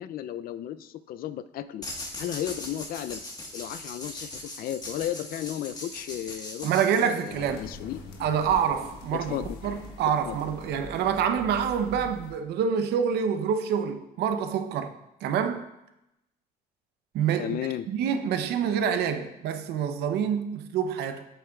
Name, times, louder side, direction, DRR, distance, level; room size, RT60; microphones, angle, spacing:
voice 1, 0.0-1.9 2.2-3.2 3.5-8.0 9.1-9.6 10.2-10.4 17.4-17.9, left 11 dB, 60° left, 0.4 m, -34 dB
sound 1, 1.8-7.5, left 2 dB, 25° left, 1.4 m, -40 dB
voice 2, 6.6-7.6 8.2-14.9 15.2-15.7 17.1-17.6 17.9-21.2, right 7 dB, 75° right, 0.7 m, -27 dB
sound 2, 7.3-12.3, left 3 dB, 80° left, 1.3 m, -43 dB
8.3 x 7.8 x 2.3 m
cardioid pair, 110°, 17 cm